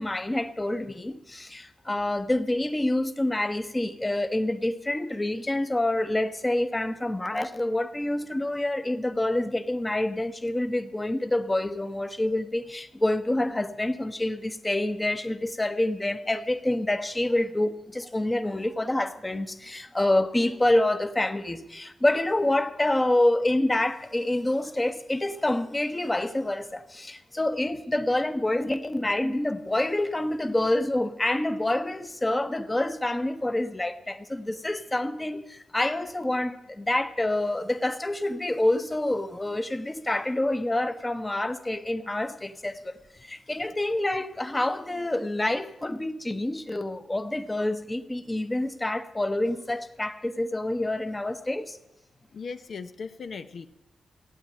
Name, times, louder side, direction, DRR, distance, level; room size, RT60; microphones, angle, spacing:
voice 1, 0.0-51.8, left 1 dB, 15° left, 1.0 m, -27 dB
voice 2, 52.3-53.7, left 5 dB, 60° left, 0.7 m, -38 dB
15.5 x 9.0 x 8.9 m
wide cardioid pair, 115°, 0 cm